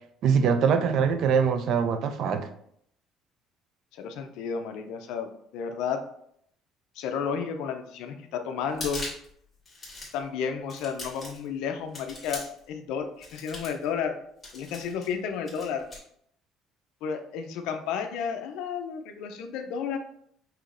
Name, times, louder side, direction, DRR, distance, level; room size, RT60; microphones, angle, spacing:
voice 1, 0.2-2.5, right 6 dB, 50° right, 9 dB, 0.4 m, -23 dB
voice 2, 3.9-6.0 6.9-9.0 10.1-14.2 14.5-15.9 17.0-20.0, left 6 dB, 75° left, 6 dB, 0.5 m, -32 dB
sound 1, 8.7-9.3 9.7-10.2 10.7-11.5 11.9-12.7 13.2-13.8 14.4-15.1 15.5-16.0, left 2 dB, 10° left, 1.5 m, -39 dB
5.6 x 2.9 x 2.5 m, 0.69 s
cardioid pair, 175°, 0 cm